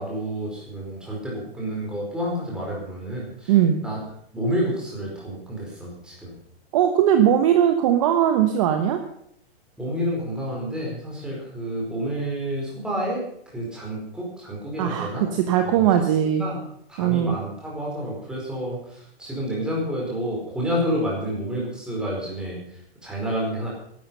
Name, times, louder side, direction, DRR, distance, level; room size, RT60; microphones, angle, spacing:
voice 1, 0.0-3.5 3.8-4.0 4.3-6.3 9.8-13.2 13.5-15.3 15.6-16.1 16.4-16.6 16.9-23.7, equal, 5° right, -4 dB, 4.6 m, -29 dB
voice 2, 3.5-3.8 6.7-9.0 14.8-16.4 17.0-17.4, right 10 dB, 30° right, 6 dB, 1.1 m, -19 dB
14.5 x 12.0 x 5.6 m, 0.69 s
hypercardioid pair, 170°, 32 cm